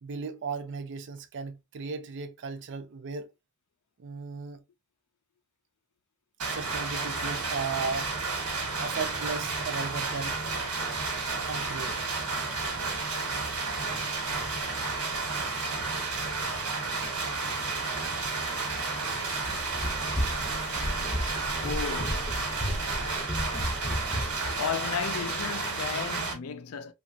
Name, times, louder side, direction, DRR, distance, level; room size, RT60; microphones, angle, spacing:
voice 1, 0.0-3.3 4.0-4.6 6.4-8.1 8.8-10.4 11.5-12.0, right 5 dB, 55° right, 0.4 m, -36 dB
sound 1, 6.4-26.3, right 3 dB, 85° right, 1.2 m, -31 dB
Run, 19.4-24.6, equal, 5° left, 0.5 m, -33 dB
voice 2, 21.6-22.4 23.7-23.9 24.6-26.9, left 7 dB, 70° left, 0.4 m, -34 dB
2.9 x 2.3 x 2.5 m
head